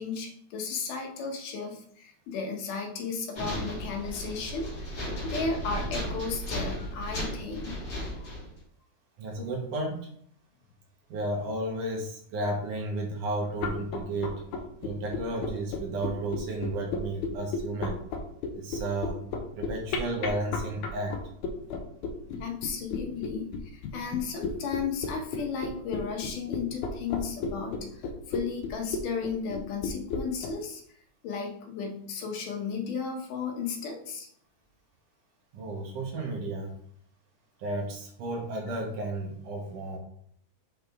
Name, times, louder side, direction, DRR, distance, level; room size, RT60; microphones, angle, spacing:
voice 1, 0.0-4.7 5.2-7.8 8.2-8.3 22.4-28.0 28.3-30.8 31.2-34.3, left 5 dB, 90° left, 1 dB, 2.9 m, -34 dB
sound 1, 3.3-8.6, equal, 35° left, 3.4 m, -35 dB
voice 2, 9.2-10.1 11.1-14.3 14.8-18.0 18.5-19.2 19.5-21.2 35.5-36.7 37.6-40.0, right 2 dB, 80° right, 0 dB, 3.3 m, -33 dB
sound 2, 13.5-30.5, left 4 dB, 75° left, 2.4 m, -33 dB
7.5 x 6.1 x 3.6 m, 0.63 s
omnidirectional pair, 3.5 m